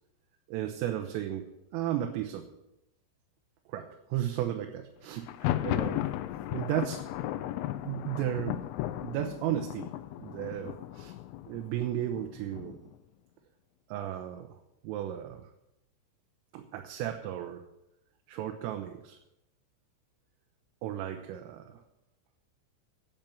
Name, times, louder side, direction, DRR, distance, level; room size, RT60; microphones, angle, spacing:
voice 1, 0.5-2.5 3.7-6.1 6.5-7.1 7.9-8.6 9.0-11.2 11.5-12.9 13.9-14.6 14.8-15.5 16.5-17.6 18.3-19.2 20.8-21.8, right 11 dB, 80° right, 4 dB, 3.5 m, -34 dB
Thunder, 5.2-12.9, left 14 dB, 85° left, 2.8 m, -35 dB
10.5 x 8.8 x 8.7 m, 0.88 s
omnidirectional pair, 5.9 m